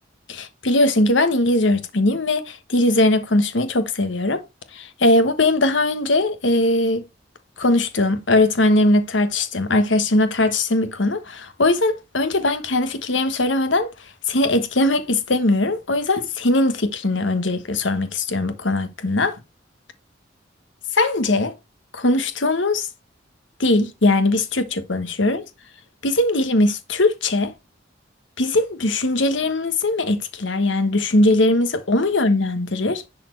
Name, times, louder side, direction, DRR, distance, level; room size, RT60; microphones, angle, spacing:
voice 1, 0.3-4.4 4.7-7.0 7.6-13.9 14.3-19.3 20.9-21.5 21.9-22.9 23.6-25.4 26.0-27.5 28.4-33.0, left 2 dB, 75° left, 1.2 m, -20 dB
10.5 x 4.3 x 4.5 m
head